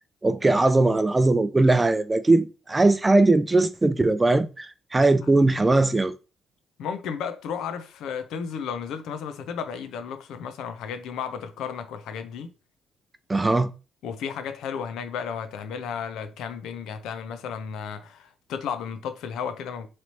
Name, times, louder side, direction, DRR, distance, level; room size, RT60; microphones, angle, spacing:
voice 1, 0.2-6.1 13.3-13.7, right 2 dB, 20° right, 0.4 m, -20 dB
voice 2, 6.8-12.5 14.0-19.9, left 7 dB, 85° left, 0.6 m, -33 dB
3.2 x 2.9 x 4.1 m
cardioid pair, 90°, 0 cm